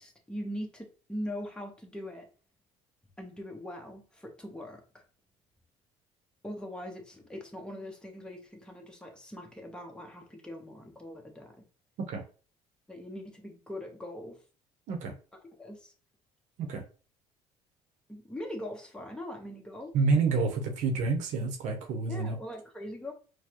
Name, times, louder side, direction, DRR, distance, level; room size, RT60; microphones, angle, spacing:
voice 1, 0.0-2.3 3.2-5.0 6.4-11.6 12.9-14.4 15.6-15.9 18.1-19.9 22.1-23.1, left 1 dB, 5° left, 2 dB, 1.0 m, -41 dB
voice 2, 19.9-22.4, right 4 dB, 70° right, 3 dB, 0.8 m, -28 dB
4.5 x 2.2 x 2.9 m, 0.37 s
supercardioid pair, 95°, 13 cm